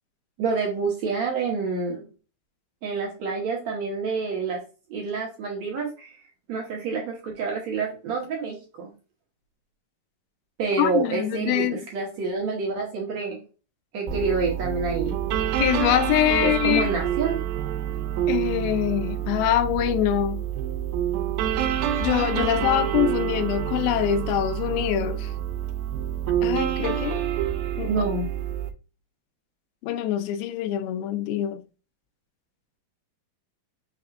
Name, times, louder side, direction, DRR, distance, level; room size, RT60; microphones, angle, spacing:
voice 1, 0.4-2.0 2.8-4.6 4.9-6.1 6.5-8.9 10.6-13.4 13.9-15.1 16.4-17.4 27.8-28.3, right 4 dB, 65° right, 1.9 m, -28 dB
voice 2, 10.8-11.8 15.6-16.9 18.3-20.4 22.0-25.3 26.4-27.2 27.8-27.9 29.8-31.6, left 11 dB, 85° left, 2.5 m, -24 dB
sound 1, 14.1-28.7, right 10 dB, 80° right, 2.4 m, -27 dB
5.8 x 3.5 x 2.5 m
omnidirectional pair, 4.3 m